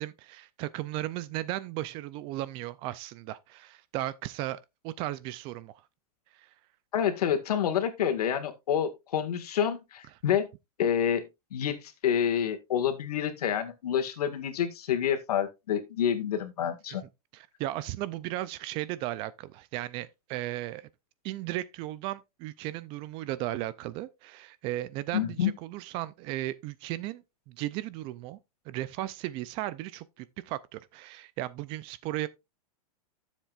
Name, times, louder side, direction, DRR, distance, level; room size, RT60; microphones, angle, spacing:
voice 1, 0.0-5.8 6.3-6.5 17.3-20.9 21.2-28.4 28.7-32.3, right 15 dB, 25° right, 0.4 m, -36 dB
voice 2, 6.9-10.5 10.8-17.0 25.1-25.5, left 9 dB, 85° left, 1.8 m, -28 dB
12.5 x 7.3 x 2.4 m
supercardioid pair, 160°, 19 cm